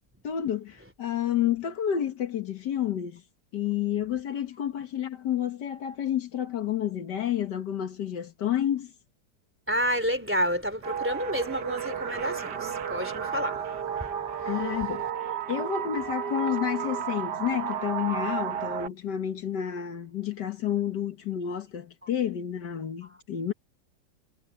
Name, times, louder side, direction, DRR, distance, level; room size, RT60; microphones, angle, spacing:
voice 1, 0.2-3.2 3.5-8.9 14.4-23.5, left 10 dB, 75° left, 1.9 m, -30 dB
voice 2, 9.7-14.5, equal, 5° right, 3.4 m, -30 dB
sound 1, 10.8-18.9, right 8 dB, 70° right, 1.9 m, -32 dB
omnidirectional pair, 1.9 m